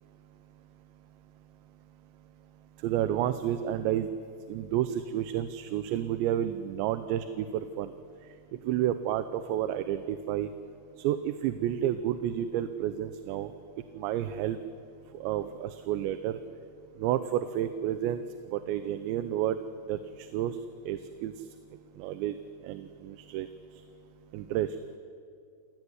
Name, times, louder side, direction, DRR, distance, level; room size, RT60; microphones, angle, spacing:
voice 1, 2.8-4.1 4.5-7.9 8.2-10.5 11.0-13.5 13.9-14.6 15.1-16.4 17.0-19.6 19.9-20.6 20.9-21.5 22.0-22.4 22.6-23.8 24.3-24.8, right 11 dB, 85° right, 10 dB, 3.1 m, -31 dB
29.0 x 18.0 x 9.6 m, 2.3 s
omnidirectional pair, 5.1 m